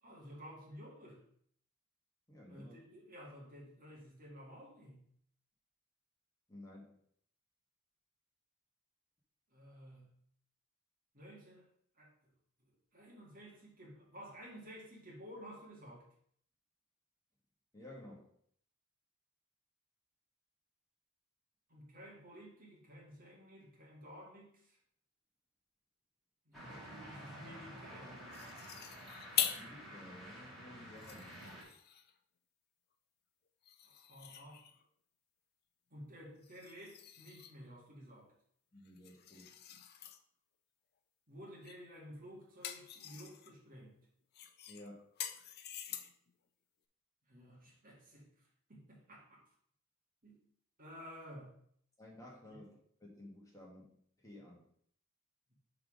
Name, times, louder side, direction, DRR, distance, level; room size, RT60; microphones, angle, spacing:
voice 1, 0.0-1.2 2.5-5.1 9.5-10.1 11.1-11.7 12.0-12.3 12.9-16.1 21.7-24.8 26.5-28.2 31.2-31.3 33.8-34.6 35.9-38.3 41.3-44.0 47.3-49.4 50.2-50.4 50.8-51.5 52.5-52.6 55.5-55.6, equal, 40° right, -3 dB, 1.9 m, -53 dB
voice 2, 2.3-2.7 6.5-7.0 17.7-18.3 29.4-31.3 38.7-39.5 44.7-45.1 52.0-53.9 54.2-54.6, left 1 dB, 15° left, -3 dB, 1.5 m, -54 dB
sound 1, 26.5-31.6, equal, ahead, 2.2 m, -51 dB
sound 2, 28.3-29.7 30.2-30.3 30.9-32.2 33.6-34.9 36.4-37.6 38.8-40.2 41.6-41.9 42.2-43.6 44.3-46.3, left 10 dB, 50° left, 0.5 m, -43 dB
5.8 x 4.0 x 4.9 m, 0.64 s
head